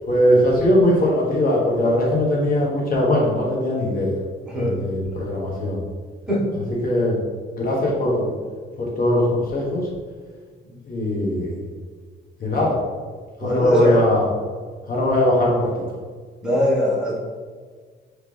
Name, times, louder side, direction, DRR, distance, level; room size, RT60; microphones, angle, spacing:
voice 1, 0.1-4.1 4.6-5.8 6.8-7.2 7.6-8.3 8.8-9.8 10.9-11.6 12.4-12.7 13.4-14.3 14.9-15.7, left 1 dB, 45° left, -3 dB, 1.3 m, -20 dB
voice 2, 13.4-14.0 16.4-17.2, equal, 5° right, -6 dB, 1.4 m, -19 dB
3.6 x 3.3 x 3.3 m, 1.5 s
cardioid pair, 90°, 20 cm